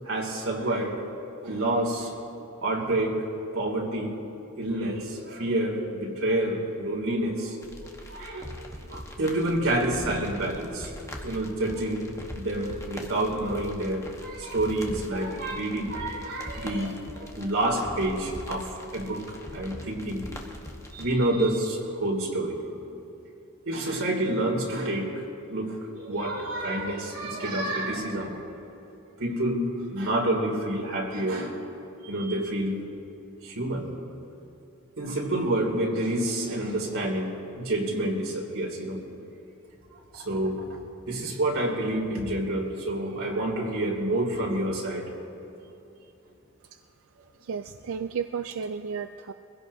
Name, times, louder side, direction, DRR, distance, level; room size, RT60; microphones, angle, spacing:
voice 1, 0.0-1.0 1.4-2.2 2.6-3.2 3.5-4.1 4.6-7.6 8.1-10.9 11.2-12.0 12.4-20.3 20.9-22.6 22.9-23.0 23.7-25.2 25.5-28.4 29.2-31.6 32.0-32.8 33.4-33.9 35.0-39.0 40.1-40.6 41.1-45.1, right 1 dB, 90° right, -2 dB, 2.7 m, -28 dB
sound 1, 7.6-21.1, left 1 dB, 15° left, 1.2 m, -42 dB
voice 2, 47.4-49.3, right 6 dB, 75° right, 9 dB, 0.4 m, -33 dB
23.5 x 16.0 x 2.7 m, 2.9 s
head